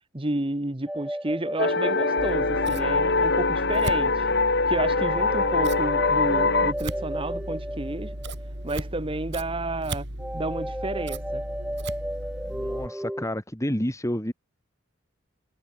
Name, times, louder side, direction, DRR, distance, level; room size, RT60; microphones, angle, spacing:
voice 1, 0.1-4.3 4.6-8.1 8.6-10.1 10.3-11.4, right 2 dB, 25° right, 1.2 m, -31 dB
sound 1, 0.9-3.5 4.9-8.8 10.2-13.3, equal, 5° right, 1.1 m, -34 dB
sound 2, 1.6-6.7, left 3 dB, 55° left, 2.8 m, -23 dB
Scissors, 2.2-12.9, right 1 dB, 55° right, 6.3 m, -36 dB
voice 2, 12.5-14.3, equal, 15° left, 2.6 m, -29 dB
head